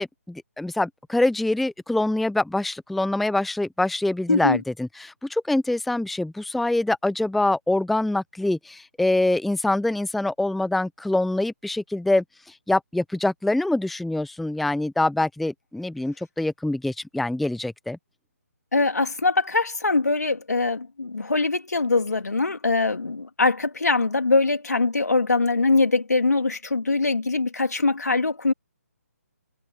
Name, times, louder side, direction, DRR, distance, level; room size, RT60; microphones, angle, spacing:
voice 1, 0.0-12.2 12.7-18.0, left 2 dB, ahead, 0.4 m, -25 dB
voice 2, 4.3-4.6 18.7-28.5, left 3 dB, 85° left, 3.3 m, -22 dB
figure-of-eight pair, 150°, 9 cm